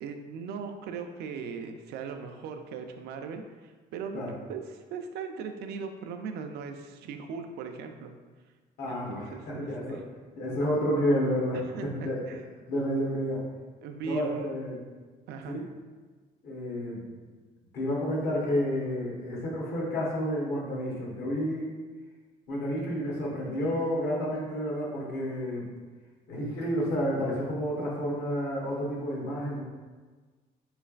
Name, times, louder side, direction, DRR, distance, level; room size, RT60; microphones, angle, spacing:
voice 1, 0.0-8.1 8.9-10.0 11.7-12.4 13.8-14.5 15.3-15.6, right 5 dB, 75° right, 6 dB, 0.4 m, -39 dB
voice 2, 8.8-10.0 10.3-12.2 12.7-13.4 14.0-14.8 15.5-15.7 16.4-17.4 17.7-21.7 22.5-25.7 26.3-29.6, equal, 65° left, -3 dB, 1.1 m, -30 dB
3.8 x 3.2 x 2.4 m, 1.4 s
cardioid pair, 110°, 17 cm